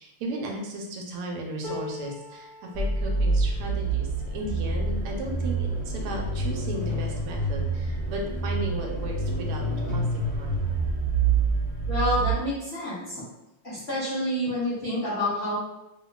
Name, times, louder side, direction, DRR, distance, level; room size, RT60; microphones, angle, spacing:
voice 1, 0.0-2.5 2.7-10.6, right 1 dB, 80° right, 1 dB, 1.5 m, -35 dB
sound 1, 1.6-7.8 8.4-8.6 8.9-9.6 10.6-10.7, left 6 dB, 55° left, 1.3 m, -45 dB
sound 2, 2.7-12.3, right 3 dB, 30° left, 0.8 m, -27 dB
voice 2, 11.9-13.2 13.6-15.6, left 1 dB, 80° left, -9 dB, 0.5 m, -28 dB
3.5 x 2.1 x 2.2 m, 0.93 s
omnidirectional pair, 2.4 m